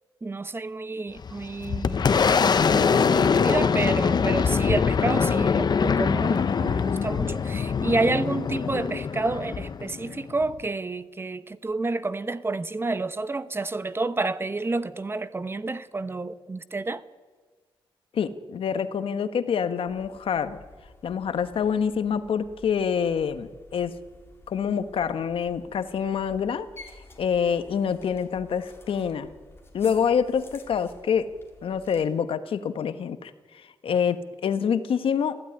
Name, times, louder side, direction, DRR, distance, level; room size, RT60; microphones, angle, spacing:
voice 1, 0.2-2.1 2.7-17.0, right 3 dB, 25° right, 1.0 m, -29 dB
Boom, 1.2-10.6, left 6 dB, 50° left, 0.9 m, -23 dB
voice 2, 18.1-20.6 21.0-23.9 24.5-26.7 27.2-29.3 29.7-31.3 31.6-35.4, left 7 dB, 75° left, 1.4 m, -26 dB
sound 1, 19.9-32.0, left 2 dB, 25° left, 4.3 m, -51 dB
26.0 x 15.5 x 9.9 m
cardioid pair, 105°, 9 cm